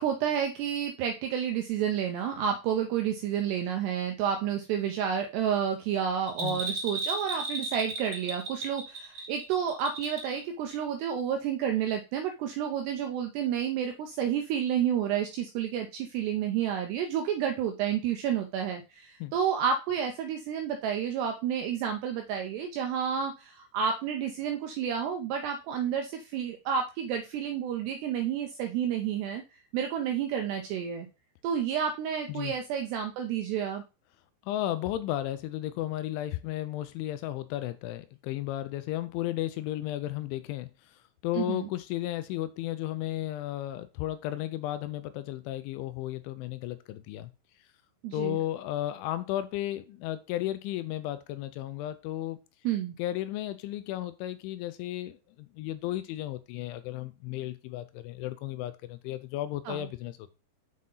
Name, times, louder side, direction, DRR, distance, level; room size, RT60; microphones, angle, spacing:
voice 1, 0.0-29.4 29.7-31.1 31.4-33.8 41.4-41.7 48.0-48.4 52.6-53.0 59.7-59.9, right 8 dB, 80° right, 2.4 m, -30 dB
Bell, 6.3-10.4 10.7-10.8, right 2 dB, 20° right, 2.5 m, -35 dB
voice 2, 34.4-47.3 48.1-52.4 53.0-60.3, left 14 dB, 80° left, 2.9 m, -34 dB
7.5 x 5.7 x 3.9 m
omnidirectional pair, 5.6 m